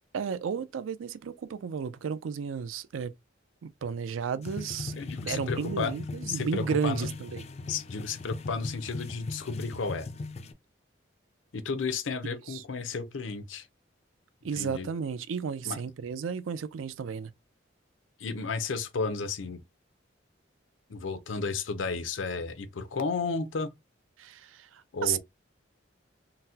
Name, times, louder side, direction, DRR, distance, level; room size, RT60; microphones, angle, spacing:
voice 1, 0.1-3.1 3.6-7.4 12.5-12.6 14.4-17.3 24.2-25.2, right 6 dB, 85° right, 0.4 m, -33 dB
sound 1, 4.4-10.5, left 3 dB, 35° left, 0.3 m, -39 dB
voice 2, 5.0-5.9 6.3-7.1 7.7-10.1 11.5-13.7 14.5-14.9 15.6-15.8 18.2-19.6 20.9-23.7 24.9-25.2, left 4 dB, 80° left, 0.6 m, -33 dB
3.9 x 2.1 x 2.7 m
head